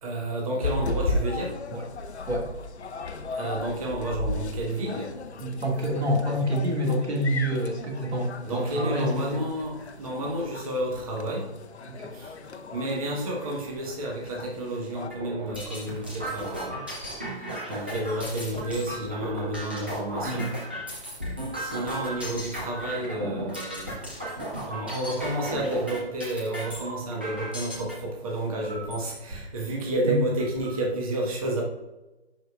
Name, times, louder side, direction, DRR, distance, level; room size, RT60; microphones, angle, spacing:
voice 1, 0.0-1.6 3.3-5.2 8.4-11.5 12.1-12.3 12.7-16.8 17.7-20.5 21.6-23.9 24.7-31.6, right 1 dB, 35° right, -2 dB, 1.4 m, -30 dB
Bar de Seu André a noite - Bar do Seu André at night, 0.6-15.1, left 2 dB, 90° left, 0.8 m, -35 dB
voice 2, 5.4-9.4 12.0-12.1 20.2-20.5 30.1-30.2, equal, 80° right, 0 dB, 2.1 m, -27 dB
sound 1, 15.1-27.9 28.6-29.2 29.7-29.8 30.1-30.8, right 1 dB, 10° right, 0.5 m, -35 dB
10.5 x 4.9 x 2.4 m, 1.1 s
hypercardioid pair, 160°, 32 cm